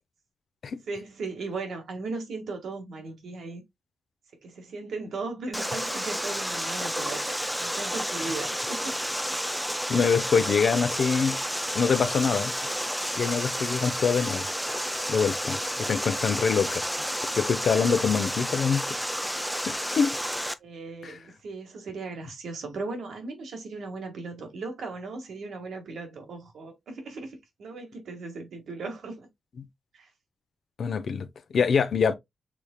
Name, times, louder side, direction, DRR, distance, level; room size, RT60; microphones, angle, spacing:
voice 1, 0.9-3.6 4.4-8.9 20.6-29.3 29.9-30.1, right 3 dB, 75° right, 1.6 m, -37 dB
Water, 5.5-20.5, equal, ahead, 0.5 m, -31 dB
voice 2, 9.9-11.4 11.7-12.5 13.1-14.5 15.1-16.8 17.3-19.0 19.7-20.2 21.0-21.2 30.8-31.3 31.5-32.1, left 6 dB, 65° left, 0.6 m, -25 dB
6.0 x 3.4 x 2.2 m
cardioid pair, 70°, 0 cm